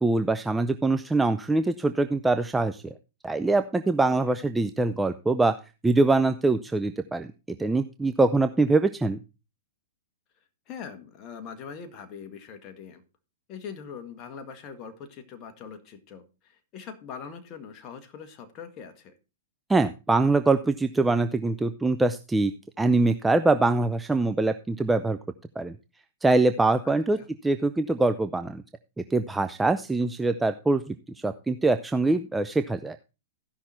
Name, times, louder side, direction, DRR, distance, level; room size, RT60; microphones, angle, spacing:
voice 1, 0.0-2.8 3.2-5.5 5.8-9.2 19.7-25.2 25.6-25.8 26.2-28.6 29.1-33.0, right 3 dB, 10° right, 9 dB, 0.6 m, -24 dB
voice 2, 10.7-13.0 13.5-19.1 26.8-27.3, left 6 dB, 35° left, 7 dB, 1.7 m, -42 dB
15.0 x 5.9 x 4.3 m, 0.30 s
hypercardioid pair, 125°, 0 cm